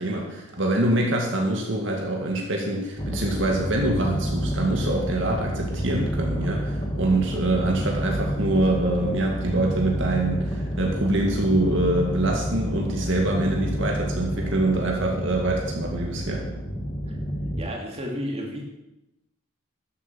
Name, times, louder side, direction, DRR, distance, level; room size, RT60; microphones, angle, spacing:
voice 1, 0.0-16.5, right 2 dB, 60° right, 0 dB, 2.1 m, -25 dB
sound 1, 3.0-17.7, equal, 20° left, 1.4 m, -29 dB
voice 2, 17.6-18.6, equal, 30° right, -1 dB, 2.6 m, -31 dB
12.5 x 8.3 x 6.9 m, 0.92 s
head